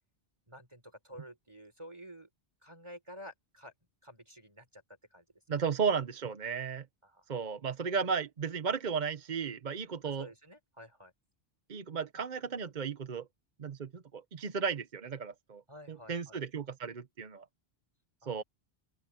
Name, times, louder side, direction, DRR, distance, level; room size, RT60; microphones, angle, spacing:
voice 1, 0.5-2.3 2.6-3.7 4.0-4.8 5.1-5.2 7.0-7.2 10.0-11.1 15.7-16.4 18.2-18.4, equal, 25° right, 3.7 m, -51 dB
voice 2, 5.5-6.9 7.3-10.3 11.7-13.3 13.6-15.6 15.9-17.4 18.2-18.4, right 6 dB, 50° right, 0.9 m, -34 dB
open air
omnidirectional pair, 1.1 m